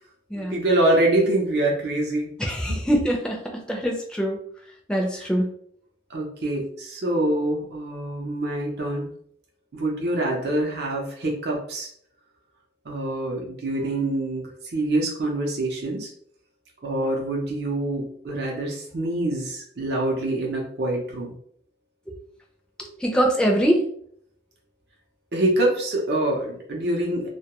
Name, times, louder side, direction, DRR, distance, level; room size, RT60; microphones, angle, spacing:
voice 1, 0.3-2.3 2.7-2.8 5.2-5.3 6.1-9.1 9.7-11.9 12.9-16.1 16.8-21.3 25.3-27.3, right 1 dB, 65° right, -1 dB, 0.6 m, -25 dB
voice 2, 2.4-3.4 3.7-4.4 4.9-5.4 23.0-23.8, equal, 5° left, 0 dB, 0.4 m, -23 dB
2.2 x 2.2 x 2.9 m, 0.62 s
head